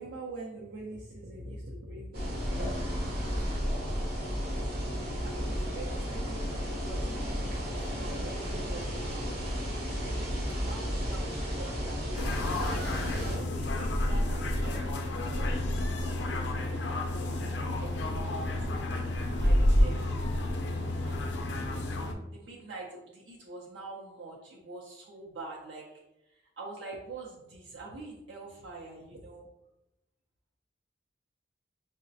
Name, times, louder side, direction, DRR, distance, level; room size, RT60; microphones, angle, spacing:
voice 1, 0.0-2.2 2.5-4.0 5.2-9.0 9.4-9.5 9.9-18.7 19.4-20.0 20.9-21.2 22.3-29.5, right 2 dB, 85° right, -3 dB, 0.5 m, -45 dB
sound 1, 2.1-13.4, equal, 60° right, 1.1 m, -33 dB
sound 2, 12.2-22.1, left 1 dB, 75° left, 0.5 m, -29 dB
4.8 x 2.1 x 2.6 m, 0.90 s
head